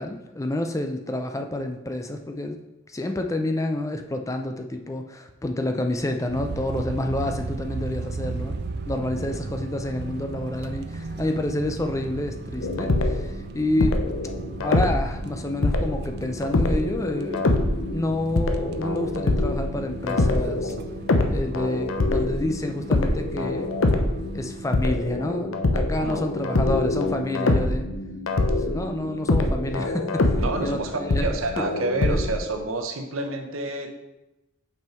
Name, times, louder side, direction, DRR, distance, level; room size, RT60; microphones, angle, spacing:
voice 1, 0.0-2.6 2.9-8.6 8.9-14.0 14.6-17.5 17.9-20.8 21.3-23.8 24.3-27.9 28.6-31.4 32.0-32.2, left 1 dB, 15° left, 5 dB, 0.4 m, -29 dB
sound 1, 6.3-24.7, right 3 dB, 55° right, 0.4 m, -36 dB
sound 2, 12.6-13.3 13.8-32.3, left 2 dB, 85° left, 0.7 m, -25 dB
voice 2, 30.4-33.9, right 2 dB, 90° right, 5 dB, 0.8 m, -29 dB
5.5 x 5.5 x 4.5 m, 0.97 s
head